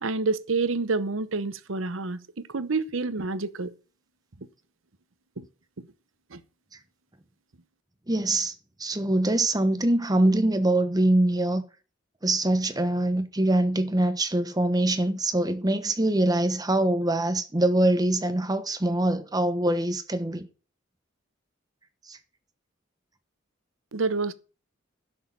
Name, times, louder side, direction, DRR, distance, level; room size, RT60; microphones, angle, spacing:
voice 1, 0.0-3.7 5.4-5.5 6.3-6.4 23.9-24.3, right 3 dB, 80° right, 0.9 m, -28 dB
voice 2, 8.1-8.5 8.8-11.6 12.2-20.5 22.1-22.2, right 1 dB, 20° right, 1.2 m, -24 dB
11.0 x 6.4 x 7.4 m
head